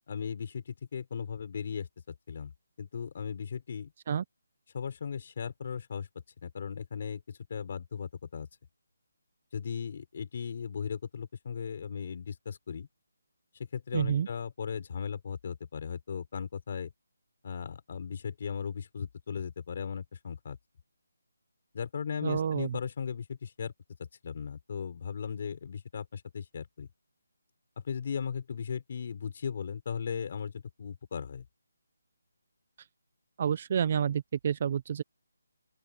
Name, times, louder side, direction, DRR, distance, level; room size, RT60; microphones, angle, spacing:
voice 1, 0.1-2.5 2.8-3.9 4.7-6.1 6.4-8.5 9.5-12.9 13.7-16.9 17.4-20.6 21.7-23.7 24.0-26.9 27.8-31.4, left 6 dB, 45° left, 5.2 m, -37 dB
voice 2, 13.9-14.3 22.2-22.8 33.4-35.0, right 8 dB, 40° right, 1.0 m, -29 dB
open air
figure-of-eight pair, 165°, 0 cm